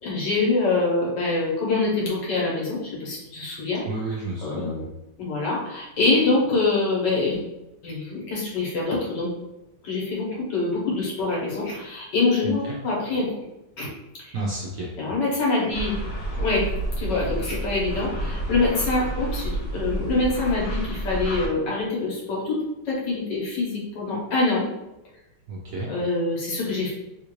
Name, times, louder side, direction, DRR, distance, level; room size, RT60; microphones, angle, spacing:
voice 1, 0.0-3.8 4.4-4.8 5.2-7.4 7.8-9.3 9.8-13.3 13.8-13.9 14.2-14.4 15.0-16.0 16.4-16.7 17.0-24.7 25.9-26.9, left 3 dB, 80° left, -4 dB, 1.8 m, -25 dB
voice 2, 3.9-4.8 12.4-12.8 14.3-14.9 25.5-25.9, right 2 dB, 70° right, -3 dB, 0.8 m, -31 dB
sound 1, 15.7-21.5, right 2 dB, 65° left, 1.4 m, -29 dB
3.5 x 2.5 x 3.0 m, 0.94 s
omnidirectional pair, 1.9 m